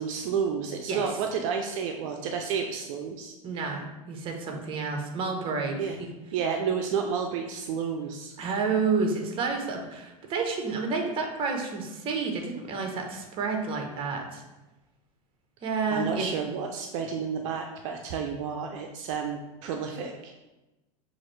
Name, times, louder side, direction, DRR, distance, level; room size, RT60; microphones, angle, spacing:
voice 1, 0.0-3.3 5.8-6.0 6.3-8.4 15.9-20.3, right 6 dB, 60° right, 3 dB, 0.4 m, -31 dB
voice 2, 3.4-6.1 8.4-14.4 15.6-16.3, right 4 dB, 30° right, 3 dB, 0.7 m, -30 dB
5.6 x 2.5 x 3.1 m, 1.1 s
supercardioid pair, 130°, 18 cm